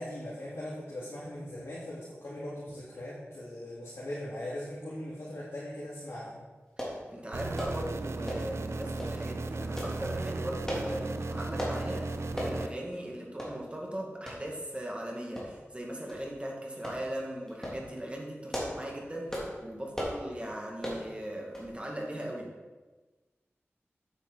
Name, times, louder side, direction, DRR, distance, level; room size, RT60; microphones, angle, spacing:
voice 1, 0.0-6.4, left 1 dB, 75° left, -9 dB, 2.4 m, -40 dB
sound 1, 6.8-7.0 7.6-7.8 8.3-8.5 9.0-9.2 9.8-10.0 10.7-10.9 11.6-11.8 12.4-12.6 12.9-13.0 13.4-13.5 14.3-14.4 15.4-15.7 16.1-16.2 16.8-17.0 17.5-17.8 18.3-18.8 19.3-19.5 19.9-20.2 20.8-21.0 21.5-21.7 22.0-22.1, equal, 10° left, 3.2 m, -36 dB
voice 2, 7.1-22.5, right 1 dB, 25° right, -1 dB, 2.2 m, -39 dB
sound 2, 7.3-12.7, right 3 dB, 75° right, 0.6 m, -35 dB
9.1 x 8.4 x 4.1 m, 1.3 s
wide cardioid pair, 60°, 5 cm